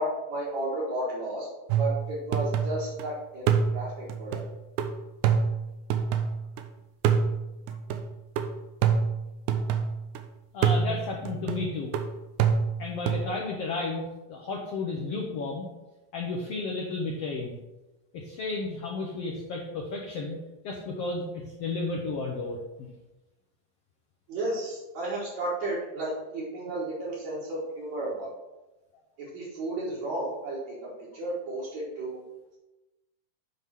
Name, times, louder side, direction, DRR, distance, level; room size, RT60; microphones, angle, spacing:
voice 1, 0.0-1.5 1.8-4.4 24.3-28.3 29.2-32.2, right 1 dB, 60° right, -9 dB, 2.7 m, -33 dB
sound 1, 1.7-3.0 3.5-6.6 7.0-10.2 10.6-13.3, right 6 dB, 80° right, 1.9 m, -27 dB
voice 2, 10.5-11.9 12.8-14.0 14.3-15.7 16.1-17.6 18.1-20.4 20.6-22.9, left 3 dB, 85° left, -1 dB, 1.3 m, -33 dB
8.0 x 3.6 x 5.8 m, 1.0 s
omnidirectional pair, 3.9 m